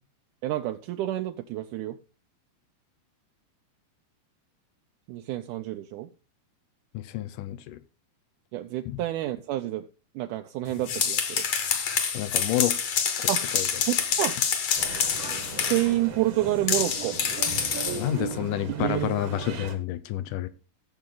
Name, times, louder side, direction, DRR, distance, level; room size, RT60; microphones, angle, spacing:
voice 1, 0.4-2.0 5.1-6.1 8.5-9.8 10.1-11.4 13.3-13.4 13.8-14.4 15.5-17.1 18.8-19.0, right 15 dB, 80° right, 1.8 m, -29 dB
voice 2, 6.9-7.8 8.9-9.0 12.1-12.8 13.2-13.3 13.5-13.7 17.9-20.5, left 14 dB, 75° left, 2.0 m, -29 dB
sound 1, 10.7-15.9 16.7-18.1, left 7 dB, 50° left, 2.4 m, -27 dB
Male speech man speaking, 14.8-19.7, right 7 dB, 55° right, 1.4 m, -36 dB
16.5 x 7.1 x 3.9 m
omnidirectional pair, 4.3 m